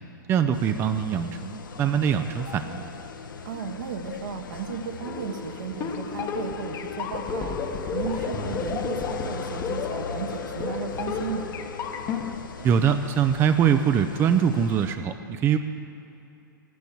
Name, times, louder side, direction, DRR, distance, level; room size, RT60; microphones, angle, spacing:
voice 1, 0.3-2.9 12.6-15.6, right 8 dB, 20° right, 8 dB, 0.5 m, -23 dB
sound 1, 0.5-15.0, left 4 dB, 75° left, 1.1 m, -39 dB
voice 2, 3.4-11.5, right 6 dB, 70° right, 5 dB, 1.4 m, -35 dB
sound 2, 5.0-12.4, left 6 dB, 30° left, 1.0 m, -32 dB
10.0 x 9.3 x 9.8 m, 2.8 s
hypercardioid pair, 115°, 11 cm